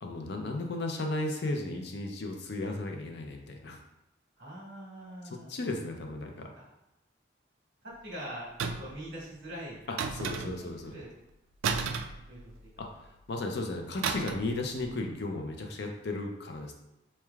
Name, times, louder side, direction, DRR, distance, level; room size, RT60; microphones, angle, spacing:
voice 1, 0.0-3.8 5.2-6.5 9.9-10.9 12.8-16.7, left 2 dB, 55° left, 3 dB, 0.5 m, -35 dB
voice 2, 4.4-5.5 6.5-6.7 7.8-9.8 10.3-11.1 12.3-12.7, right 1 dB, 60° right, -6 dB, 1.4 m, -43 dB
sound 1, 8.6-9.0 10.0-10.8 11.6-12.8 14.0-14.5 14.8-15.0, right 5 dB, 90° right, 0.3 m, -33 dB
4.4 x 3.1 x 2.3 m, 0.92 s
head